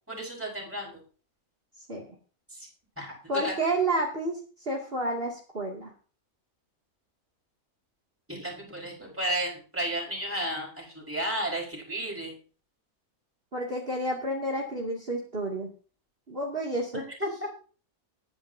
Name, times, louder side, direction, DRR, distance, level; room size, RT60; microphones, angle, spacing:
voice 1, 0.1-1.0 2.5-2.7 3.0-3.6 8.3-12.3 16.9-17.5, right 1 dB, 10° right, -2 dB, 4.9 m, -33 dB
voice 2, 3.3-4.4 4.7-5.9 13.5-15.7 16.3-17.0, right 1 dB, 40° right, -2 dB, 2.7 m, -30 dB
20.0 x 10.0 x 2.8 m, 0.37 s
omnidirectional pair, 1.5 m